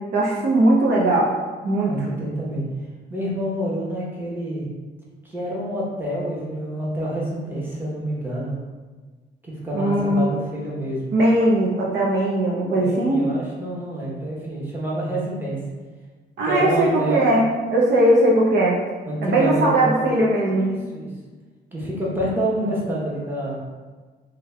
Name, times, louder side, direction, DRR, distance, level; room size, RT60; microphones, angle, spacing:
voice 1, 0.1-1.3 1.6-1.9 9.7-10.4 11.1-13.2 16.4-18.8 19.2-20.7, right 1 dB, 60° right, -3 dB, 0.6 m, -19 dB
voice 2, 1.9-2.6 3.1-4.7 5.2-8.5 9.4-11.1 12.7-15.6 16.4-17.3 19.0-20.0 20.4-21.1 21.7-23.6, right 1 dB, 10° right, -6 dB, 1.0 m, -27 dB
3.2 x 2.4 x 3.2 m, 1.4 s
cardioid pair, 90°, 20 cm